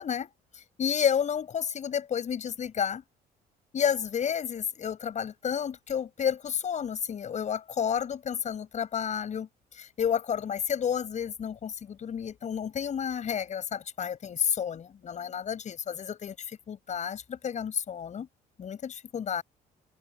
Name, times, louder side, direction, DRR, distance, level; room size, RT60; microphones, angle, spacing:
voice 1, 0.0-3.0 3.7-18.3 18.6-19.4, left 8 dB, 45° left, 7.3 m, -31 dB
cardioid pair, 110°, 17 cm